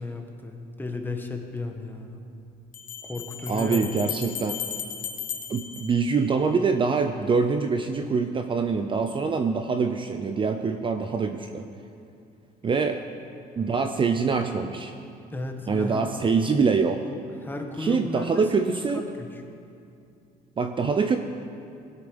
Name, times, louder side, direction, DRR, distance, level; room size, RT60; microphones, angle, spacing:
voice 1, 0.0-2.3 3.0-4.0 15.3-16.0 17.3-18.6 18.9-19.4, left 2 dB, 10° left, 3 dB, 1.4 m, -34 dB
Bell, 1.1-1.2 2.7-6.7, left 8 dB, 50° left, 1.1 m, -36 dB
voice 2, 3.5-4.6 5.5-11.7 12.6-13.0 13.6-14.9 15.7-17.1 17.8-19.0 20.6-21.2, right 5 dB, 30° right, 7 dB, 0.6 m, -24 dB
18.0 x 8.3 x 5.3 m, 2.5 s
cardioid pair, 110°, 17 cm